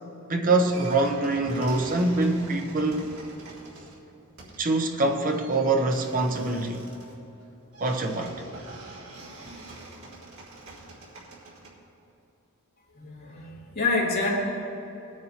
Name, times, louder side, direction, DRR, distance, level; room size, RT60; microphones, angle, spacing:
voice 1, 0.3-3.1 4.6-6.9 7.8-8.4, right 2 dB, 40° right, 4 dB, 1.0 m, -24 dB
sound 1, 0.7-11.7, right 2 dB, 85° right, 2.7 m, -46 dB
voice 2, 12.9-14.3, left 3 dB, 45° left, -5 dB, 2.8 m, -27 dB
20.0 x 9.4 x 2.9 m, 3.0 s
head